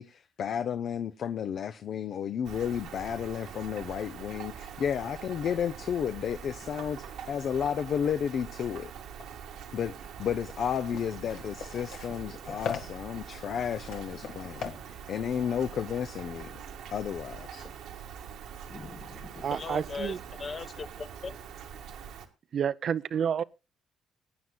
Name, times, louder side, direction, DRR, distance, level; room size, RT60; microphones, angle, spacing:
voice 1, 0.0-8.9 9.7-16.6 16.9-17.7, left 8 dB, 60° left, 0.6 m, -32 dB
Rain, 2.4-22.3, right 8 dB, 80° right, 1.7 m, -44 dB
sound 1, 10.3-16.4, left 7 dB, 80° left, 1.9 m, -42 dB
voice 2, 18.7-21.4, left 5 dB, 35° left, 1.0 m, -40 dB
voice 3, 19.4-20.2 22.5-23.4, right 8 dB, 55° right, 0.6 m, -29 dB
21.5 x 9.5 x 2.3 m
cardioid pair, 85°, 0 cm